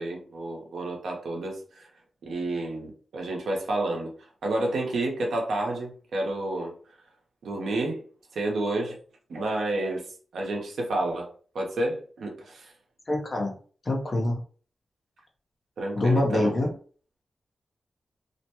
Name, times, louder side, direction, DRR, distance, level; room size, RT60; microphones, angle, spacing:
voice 1, 0.0-1.9 2.2-4.1 4.4-6.7 7.4-8.1 8.3-9.0 9.3-10.0 10.3-12.7 15.8-16.6, right 2 dB, 85° right, 0 dB, 0.8 m, -30 dB
voice 2, 13.1-13.6 13.8-14.4 15.9-16.7, left 2 dB, 55° left, 1 dB, 0.9 m, -25 dB
2.5 x 2.1 x 2.9 m, 0.41 s
cardioid pair, 45°, 0 cm